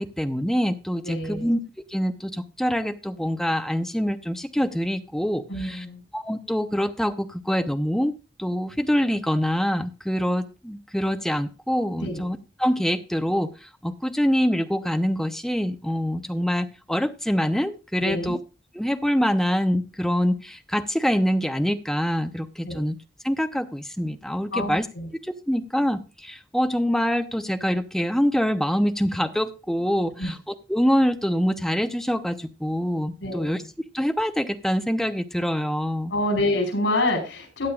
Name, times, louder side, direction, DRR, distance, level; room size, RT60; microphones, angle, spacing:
voice 1, 0.0-1.6 1.9-5.8 6.1-8.1 8.4-13.5 13.8-18.4 18.7-23.0 23.2-24.9 25.5-30.3 30.7-33.6 33.9-36.1, equal, ahead, 9 dB, 0.7 m, -25 dB
voice 2, 1.0-1.5 5.5-6.0 12.0-12.2 18.0-18.4 22.6-22.8 24.5-25.1 30.2-30.3 33.2-33.5 36.1-37.7, left 1 dB, 85° left, 4 dB, 4.6 m, -27 dB
15.5 x 9.4 x 2.4 m, 0.29 s
head